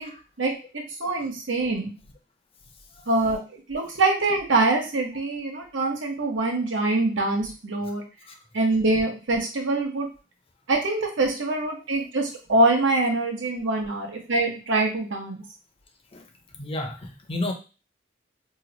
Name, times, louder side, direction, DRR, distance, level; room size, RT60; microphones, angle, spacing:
voice 1, 0.4-1.9 3.1-3.4 3.7-8.0 8.5-10.1 10.7-15.4, right 2 dB, 90° right, 1 dB, 0.9 m, -24 dB
voice 2, 16.5-17.5, left 1 dB, 30° left, 4 dB, 0.5 m, -33 dB
3.0 x 2.2 x 3.9 m, 0.33 s
head